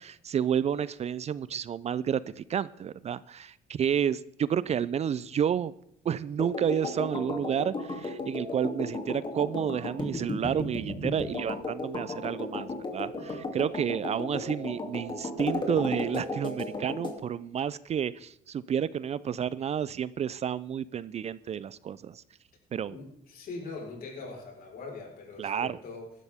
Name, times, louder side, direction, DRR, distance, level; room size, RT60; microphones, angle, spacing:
voice 1, 0.0-5.7 6.0-22.2 22.7-23.0 25.4-25.8, right 8 dB, 40° right, 18 dB, 0.5 m, -30 dB
sound 1, 6.4-17.2, left 2 dB, 30° left, 2.7 m, -35 dB
voice 2, 22.9-26.1, left 3 dB, 60° left, 1 dB, 4.5 m, -42 dB
15.5 x 12.5 x 3.6 m, 0.73 s
cardioid pair, 110°, 17 cm